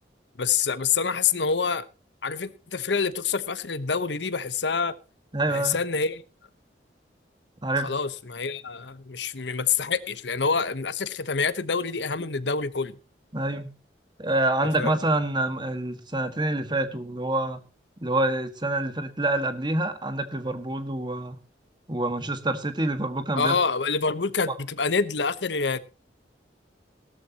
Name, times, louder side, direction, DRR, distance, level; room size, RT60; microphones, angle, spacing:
voice 1, 0.4-1.9 2.2-4.9 5.5-6.2 7.8-13.0 14.8-15.0 23.4-25.8, left 5 dB, 80° left, 1.1 m, -26 dB
voice 2, 5.3-5.8 7.6-7.9 13.3-13.7 14.2-17.6 18.0-21.4 21.9-23.6, right 2 dB, 25° right, 1.7 m, -27 dB
17.5 x 13.0 x 2.9 m
head